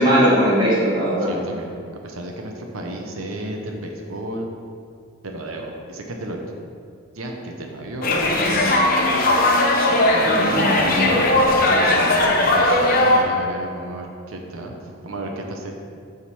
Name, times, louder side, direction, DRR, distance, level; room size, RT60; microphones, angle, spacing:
voice 1, 0.0-1.3 10.3-11.1, equal, 25° right, -7 dB, 1.9 m, -19 dB
voice 2, 1.2-1.7 2.0-4.5 5.2-6.4 7.1-8.2 10.1-11.1 11.7-14.8 15.0-15.7, right 1 dB, 90° right, 2 dB, 0.8 m, -33 dB
sound 1, 8.0-13.2, left 1 dB, 45° left, 0.8 m, -18 dB
7.1 x 3.7 x 6.1 m, 2.2 s
head